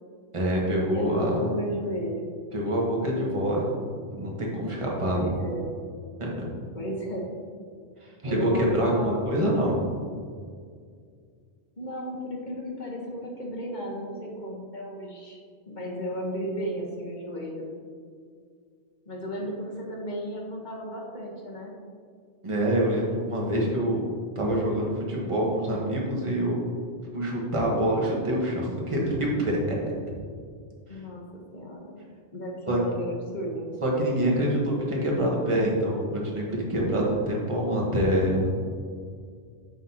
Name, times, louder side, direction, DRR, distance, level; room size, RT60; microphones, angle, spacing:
voice 1, 0.3-1.4 2.5-3.7 4.1-5.3 6.2-6.5 8.0-9.8 22.4-24.0 24.3-26.6 27.1-29.6 32.7-32.8 33.8-38.5, right 1 dB, 30° right, -3 dB, 1.2 m, -26 dB
voice 2, 0.9-2.2 5.1-5.7 6.7-7.3 8.2-9.2 11.8-15.4 15.7-17.7 19.1-21.8 30.9-31.2 31.5-32.0 32.3-33.7, equal, 45° left, -1 dB, 1.2 m, -34 dB
7.5 x 5.8 x 2.8 m, 2.1 s
omnidirectional pair, 1.2 m